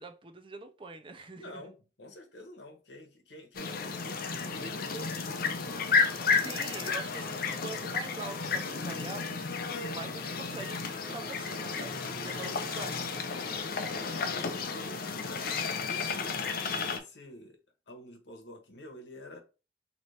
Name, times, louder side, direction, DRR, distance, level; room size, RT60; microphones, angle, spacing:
voice 1, 0.0-1.7 6.3-9.5 9.9-13.0, right 3 dB, 30° right, 0.5 m, -44 dB
voice 2, 1.3-5.9 13.3-13.6 14.1-16.4 16.9-17.6 17.9-19.4, left 1 dB, 75° left, 1.0 m, -48 dB
sound 1, 3.5-17.0, left 5 dB, 55° left, 0.6 m, -32 dB
3.2 x 2.9 x 4.1 m
head